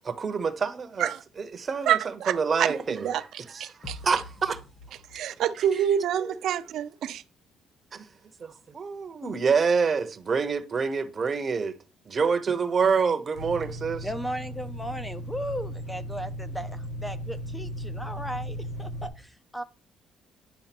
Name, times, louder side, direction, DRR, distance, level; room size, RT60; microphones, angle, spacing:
voice 1, 0.0-1.1 1.4-2.0 2.3-4.6 6.2-6.3 7.9-8.0 8.4-11.7 12.1-14.1, right 5 dB, 25° right, 0.9 m, -27 dB
voice 2, 1.9-2.7 3.0-3.2 3.6-4.0 5.1-7.2, right 9 dB, 60° right, 0.7 m, -27 dB
sound 1, 3.8-5.6, left 2 dB, 40° left, 1.7 m, -45 dB
sound 2, 13.3-19.1, equal, 80° left, 3.8 m, -36 dB
voice 3, 14.0-19.6, equal, 5° left, 0.5 m, -36 dB
10.0 x 3.8 x 6.0 m
cardioid pair, 160°, 0 cm